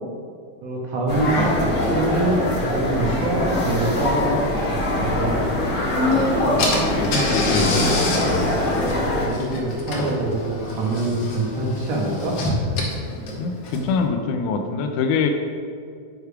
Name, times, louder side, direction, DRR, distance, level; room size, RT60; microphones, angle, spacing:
voice 1, 0.6-4.4 4.7-5.4 6.1-6.8 9.3-12.4 13.2-13.4, right 2 dB, 80° right, -3 dB, 1.5 m, -25 dB
sound 1, 1.1-9.3, left 1 dB, 55° left, 1.2 m, -22 dB
Car / Engine, 6.1-6.2 6.6-14.0, left 2 dB, 75° left, 1.4 m, -27 dB
voice 2, 6.9-8.7 13.4-15.3, left 4 dB, 90° left, 5 dB, 1.8 m, -25 dB
6.7 x 4.7 x 4.9 m, 2.2 s
omnidirectional pair, 4.2 m